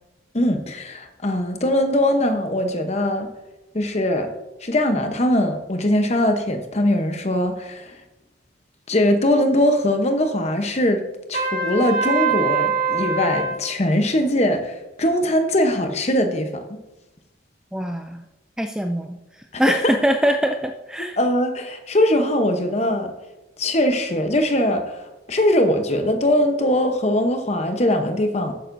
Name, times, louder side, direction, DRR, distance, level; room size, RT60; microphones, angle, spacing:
voice 1, 0.3-3.3 3.7-4.3 4.6-7.9 8.9-11.0 11.3-16.6 19.5-19.9 21.0-23.1 23.6-25.0 25.3-28.5, left 1 dB, 35° left, 6 dB, 0.9 m, -21 dB
Trumpet, 11.3-13.6, right 4 dB, 45° right, 1.8 m, -23 dB
voice 2, 17.7-18.2 18.6-19.2 19.6-21.2, equal, 5° right, 5 dB, 0.3 m, -22 dB
12.5 x 9.1 x 2.6 m, 1.0 s
head